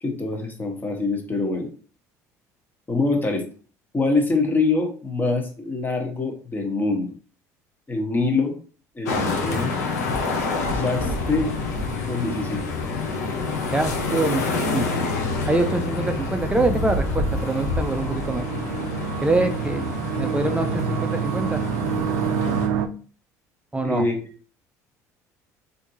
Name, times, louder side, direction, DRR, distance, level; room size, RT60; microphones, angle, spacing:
voice 1, 0.0-1.7 2.9-3.5 3.9-7.1 7.9-8.5 8.9-9.7 10.7-11.5 12.1-12.7 23.8-24.2, left 3 dB, 25° left, 2 dB, 1.1 m, -24 dB
sound 1, 9.1-22.7, left 3 dB, 90° left, 0.6 m, -27 dB
sound 2, 9.7-22.9, right 9 dB, 75° right, 0.3 m, -31 dB
voice 2, 13.7-14.9 15.5-18.4 19.2-21.6 23.7-24.1, right 2 dB, 15° right, 7 dB, 0.5 m, -25 dB
3.4 x 2.6 x 2.8 m, 0.40 s
hypercardioid pair, 75°, 8 cm